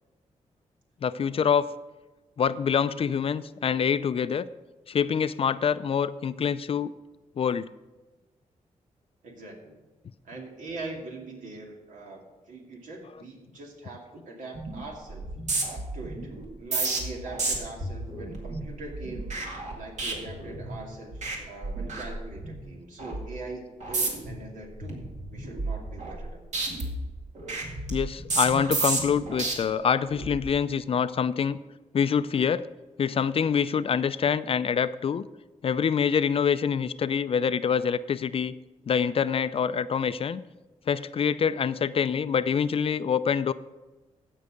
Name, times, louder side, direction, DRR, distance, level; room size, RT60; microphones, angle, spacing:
voice 1, 1.0-1.7 2.4-4.5 4.9-6.9 7.4-7.7 27.9-31.6 31.9-32.7 33.0-35.3 35.6-38.5 38.9-40.4 40.9-43.5, left 7 dB, 45° left, 15 dB, 0.4 m, -25 dB
voice 2, 9.2-9.8 10.2-12.2 12.5-15.3 15.9-16.3 16.6-19.4 19.8-26.4, right 2 dB, 85° right, 0 dB, 2.4 m, -42 dB
sound 1, 14.5-14.8 15.1-20.8 21.1-21.4 21.6-22.6 23.0-23.3 23.8-24.4 24.8-26.3 26.5-29.5 30.1-30.4, right 3 dB, 65° right, 2.1 m, -32 dB
15.0 x 5.5 x 5.1 m, 1.1 s
cardioid pair, 100°, 13 cm